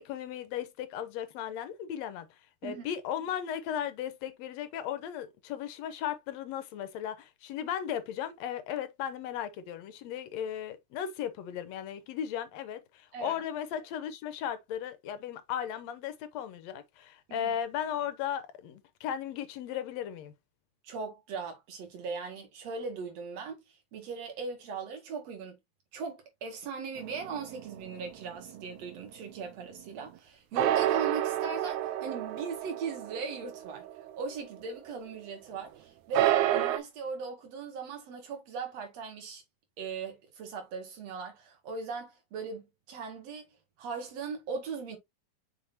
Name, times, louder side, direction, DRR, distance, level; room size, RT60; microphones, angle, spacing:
voice 1, 0.0-2.3 2.6-20.3, left 9 dB, 70° left, 1.9 m, -36 dB
voice 2, 20.8-23.6 23.9-25.6 25.9-33.8 34.1-39.4 39.8-43.5 43.8-45.0, right 5 dB, 60° right, 3.0 m, -39 dB
sound 1, 27.0-28.5 30.6-34.7 34.9-35.0 36.1-36.8, right 12 dB, 85° right, 2.1 m, -30 dB
6.3 x 5.6 x 2.7 m
omnidirectional pair, 3.5 m